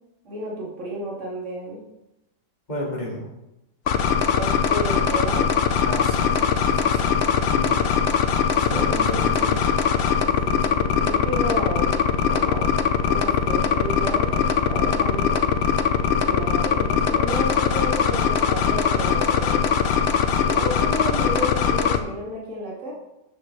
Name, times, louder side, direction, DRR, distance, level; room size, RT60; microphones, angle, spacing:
voice 1, 0.2-1.8 4.3-5.5 8.7-8.9 10.5-12.7 13.0-15.4 16.1-19.7 20.4-22.9, equal, 45° right, -6 dB, 2.7 m, -31 dB
voice 2, 2.7-3.3 5.8-6.3 6.7-7.2 7.5-7.9 8.6-9.7, left 1 dB, 25° left, -3 dB, 2.2 m, -32 dB
sound 1, 3.9-22.0, left 7 dB, 65° left, 0.6 m, -21 dB
12.0 x 7.4 x 3.3 m, 0.93 s
omnidirectional pair, 1.8 m